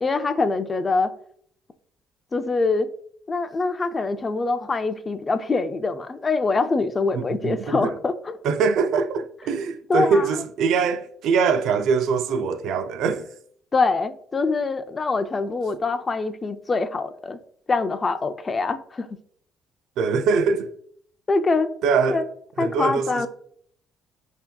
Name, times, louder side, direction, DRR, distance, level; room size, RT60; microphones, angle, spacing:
voice 1, 0.0-1.1 2.3-2.9 3.3-8.4 9.9-10.3 13.7-17.4 17.7-19.1 21.3-21.7 22.1-22.2 22.6-23.3, left 3 dB, 30° left, 0.4 m, -24 dB
voice 2, 7.1-8.0 8.4-13.3 20.0-20.7 21.8-22.2 22.6-23.3, right 5 dB, 75° right, 0.3 m, -23 dB
5.5 x 2.8 x 2.3 m
supercardioid pair, 75°, 0 cm